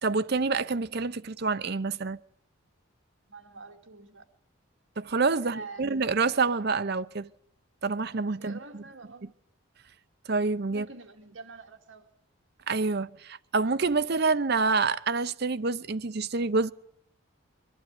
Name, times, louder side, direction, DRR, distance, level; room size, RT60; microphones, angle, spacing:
voice 1, 0.0-2.2 5.0-7.3 7.8-8.6 10.3-10.9 12.7-16.7, right 4 dB, 50° right, 0.7 m, -27 dB
voice 2, 3.3-4.3 5.4-5.9 8.4-9.3 10.7-12.1, right 3 dB, 65° right, 2.4 m, -46 dB
23.0 x 12.0 x 9.7 m
head